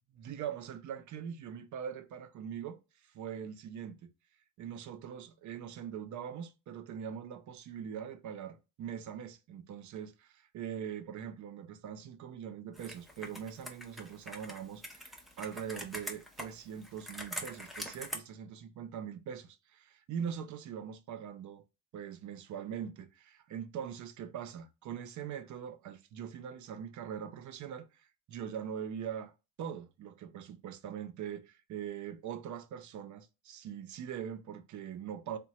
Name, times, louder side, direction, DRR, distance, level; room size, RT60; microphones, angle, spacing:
voice 1, 0.2-2.8 3.1-4.1 4.6-21.6 21.9-29.3 29.6-35.4, right 8 dB, 55° right, 0.5 m, -42 dB
Computer keyboard, 12.7-18.2, equal, ahead, 0.4 m, -44 dB
3.0 x 2.2 x 2.7 m
cardioid pair, 115°, 37 cm